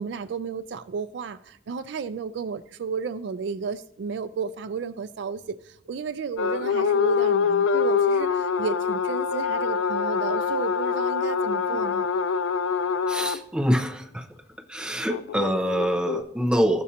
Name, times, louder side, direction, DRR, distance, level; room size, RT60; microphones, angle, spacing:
voice 1, 0.0-12.1, right 5 dB, 60° right, 13 dB, 0.3 m, -33 dB
sound 1, 6.4-13.4 15.1-16.2, left 6 dB, 85° left, 0.4 m, -25 dB
voice 2, 13.1-14.3 14.7-16.8, equal, 5° right, 3 dB, 0.8 m, -25 dB
15.0 x 6.1 x 2.8 m, 0.72 s
head